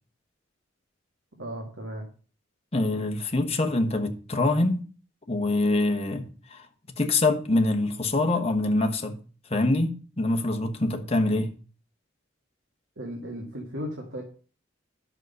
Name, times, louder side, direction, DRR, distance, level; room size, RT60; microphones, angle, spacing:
voice 1, 1.4-2.1 13.0-14.2, equal, 85° right, 1.9 m, -35 dB
voice 2, 2.7-4.8 5.3-6.7 7.0-9.2 9.5-11.5, left 2 dB, 30° left, 1.2 m, -25 dB
10.5 x 6.5 x 5.4 m
head